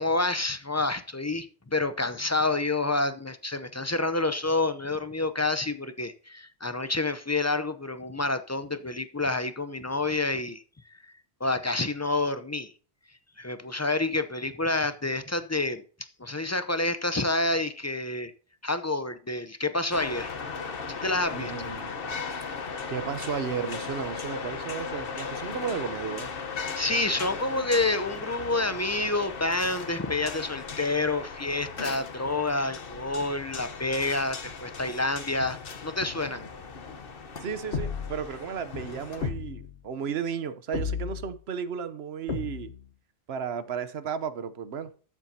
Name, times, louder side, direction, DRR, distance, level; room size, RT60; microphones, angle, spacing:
voice 1, 0.0-10.6 11.4-12.7 13.4-15.8 16.2-18.3 18.6-20.3 21.0-21.7 26.7-35.6 35.8-36.5, left 2 dB, 20° left, 0.5 m, -28 dB
sound 1, 19.9-39.3, left 5 dB, 60° left, 1.2 m, -37 dB
voice 2, 21.3-22.0 22.9-26.3 37.4-42.7 43.3-44.9, right 7 dB, 70° right, 1.1 m, -34 dB
sound 2, 37.7-38.3 39.2-39.8 40.7-41.4 42.3-42.9, left 5 dB, 90° left, 1.5 m, -33 dB
13.0 x 7.3 x 2.8 m
omnidirectional pair, 1.1 m